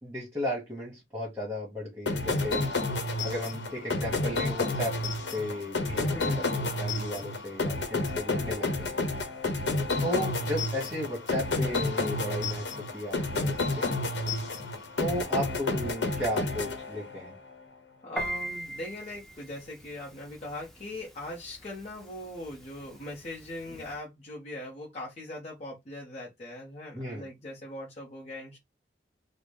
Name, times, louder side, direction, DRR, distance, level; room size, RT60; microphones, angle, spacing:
voice 1, 0.0-2.6 3.2-5.0 5.3-9.0 10.0-13.9 15.0-17.3 26.9-27.3, equal, 15° right, 1.2 m, -34 dB
sound 1, 2.1-17.4, left 2 dB, 85° left, 0.9 m, -30 dB
voice 2, 6.0-6.6 9.5-9.8 18.0-28.6, left 1 dB, 40° left, 0.8 m, -41 dB
Piano, 18.2-24.0, right 1 dB, ahead, 0.7 m, -42 dB
3.8 x 2.0 x 3.3 m
head